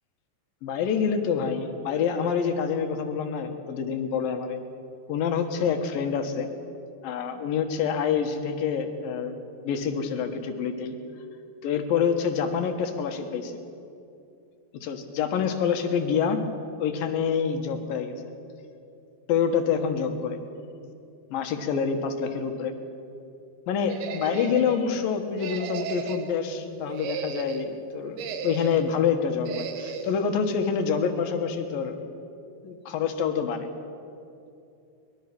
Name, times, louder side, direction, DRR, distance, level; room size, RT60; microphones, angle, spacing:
voice 1, 0.6-4.6 5.1-6.5 7.0-9.4 9.6-11.0 11.6-13.5 14.7-16.4 16.8-18.1 19.3-20.4 21.3-22.7 23.7-32.0 32.6-33.7, left 6 dB, 70° left, 6 dB, 3.1 m, -27 dB
sound 1, 23.9-24.8 25.4-26.3 26.8-27.7 28.2-28.9 29.5-30.1, right 7 dB, 90° right, 3.2 m, -35 dB
23.5 x 21.5 x 6.1 m, 2.6 s
omnidirectional pair, 4.3 m